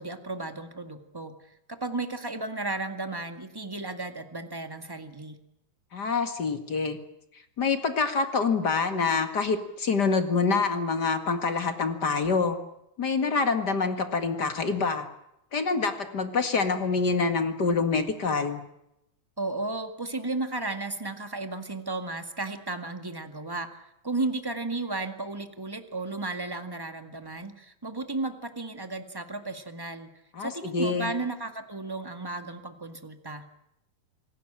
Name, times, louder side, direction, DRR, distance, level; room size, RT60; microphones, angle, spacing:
voice 1, 0.0-1.3 1.7-5.4 19.4-23.7 24.0-30.1 30.4-33.4, right 2 dB, 10° right, 7 dB, 1.4 m, -34 dB
voice 2, 5.9-7.0 7.6-12.6 13.0-15.1 15.5-18.6 30.3-31.1, left 4 dB, 40° left, 8 dB, 2.3 m, -26 dB
26.5 x 18.0 x 8.8 m, 0.82 s
omnidirectional pair, 3.3 m